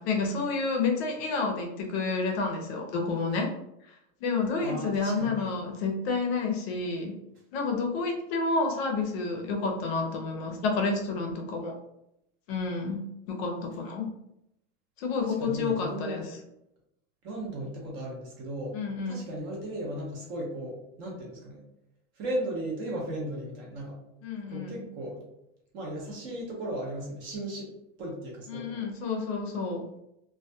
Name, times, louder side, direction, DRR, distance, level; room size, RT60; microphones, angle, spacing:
voice 1, 0.0-3.5 3.8-7.1 7.5-11.8 12.5-14.1 15.0-16.3 18.7-19.3 24.2-24.9 28.5-29.9, left 4 dB, 55° left, 2 dB, 0.5 m, -30 dB
voice 2, 4.6-5.5 15.2-16.3 17.2-18.8 19.1-21.6 22.2-24.0 24.5-25.3 25.7-27.7 28.0-28.8, right 1 dB, 30° right, -2 dB, 0.6 m, -36 dB
2.2 x 2.2 x 2.6 m, 0.83 s
supercardioid pair, 165°, 38 cm